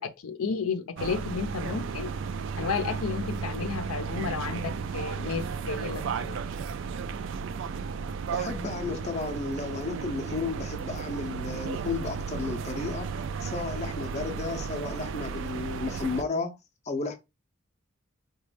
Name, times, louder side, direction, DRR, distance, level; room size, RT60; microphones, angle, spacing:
voice 1, 0.0-2.1 2.6-6.4, left 5 dB, 90° left, 0.5 m, -32 dB
sound 1, 1.0-16.2, right 6 dB, 60° right, 0.3 m, -34 dB
voice 2, 8.2-13.1 13.4-16.6 16.9-17.2, left 4 dB, 30° left, 0.5 m, -33 dB
4.0 x 2.2 x 3.2 m
head